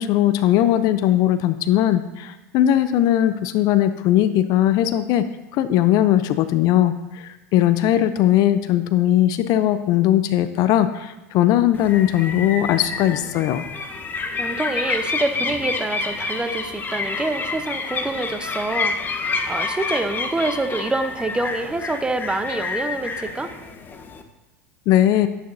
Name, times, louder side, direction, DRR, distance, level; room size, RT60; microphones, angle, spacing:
voice 1, 0.0-5.3 5.5-13.7 24.9-25.3, left 12 dB, 50° left, 11 dB, 0.6 m, -19 dB
sound 1, 11.7-24.2, left 4 dB, 25° left, 1.0 m, -28 dB
voice 2, 14.4-19.0 19.5-23.5, right 2 dB, 10° right, 8 dB, 0.9 m, -26 dB
11.0 x 10.0 x 2.7 m, 0.99 s
hypercardioid pair, 85°, 8 cm